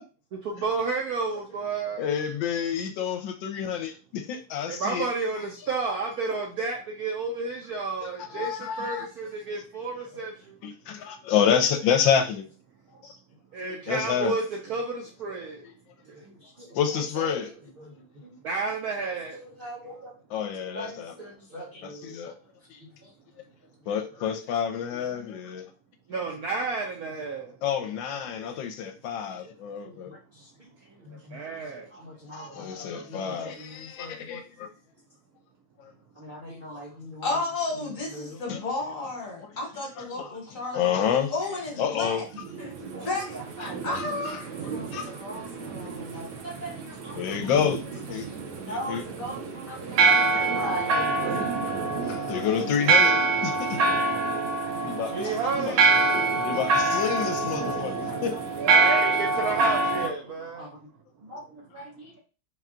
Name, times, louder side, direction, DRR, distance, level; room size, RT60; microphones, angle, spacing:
voice 1, 0.3-2.1 4.7-10.6 13.5-15.7 16.1-16.2 18.4-19.4 26.1-27.6 31.1-31.9 47.0-47.2 55.1-55.9 58.6-60.7, right 4 dB, 70° right, 0.9 m, -31 dB
voice 2, 2.0-5.1 8.0-9.1 10.6-12.4 13.9-14.4 16.7-17.5 20.3-21.1 21.8-22.3 22.7-22.8 23.9-25.6 27.6-30.1 32.3-34.7 35.8-35.9 38.5-38.6 39.4-39.5 40.0-40.3 40.7-41.3 41.8-42.2 43.6-44.4 44.9-45.1 47.2-47.8 48.1-48.3 48.7-49.0 52.0-53.1 53.4-53.8 54.8-55.3 55.6-55.8 56.4-58.4, left 8 dB, 80° left, 1.3 m, -28 dB
voice 3, 16.2-16.7 17.2-17.4 17.8-18.3 19.3-20.1 20.7-22.2 23.0-23.1 30.0-30.2 31.0-34.3 36.2-37.3 38.1-38.4 42.6-43.1 43.6-44.0 44.7-47.2 48.7-51.5 54.4-54.5 57.6-58.4 58.7-58.9 60.6-60.7 61.3-62.2, right 1 dB, 40° right, 0.8 m, -40 dB
voice 4, 37.2-42.3 43.0-43.4 43.8-45.6 55.2-55.6, left 3 dB, 50° left, 1.3 m, -33 dB
sound 1, 42.4-60.1, right 3 dB, 85° right, 1.6 m, -26 dB
4.2 x 2.2 x 3.6 m
omnidirectional pair, 2.1 m